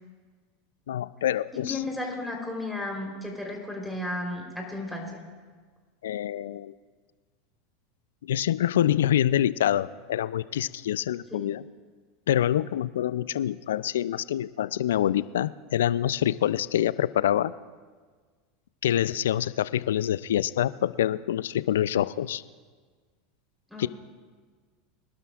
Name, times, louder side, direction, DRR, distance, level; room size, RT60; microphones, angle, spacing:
voice 1, 0.9-1.8 6.0-6.7 8.2-11.6 12.3-17.5 18.8-22.4 23.8-23.9, left 11 dB, 80° left, 17 dB, 0.4 m, -26 dB
voice 2, 1.5-5.2 11.3-11.5 23.7-23.9, left 2 dB, ahead, -1 dB, 3.7 m, -34 dB
24.5 x 12.0 x 2.4 m, 1.5 s
hypercardioid pair, 95°, 0 cm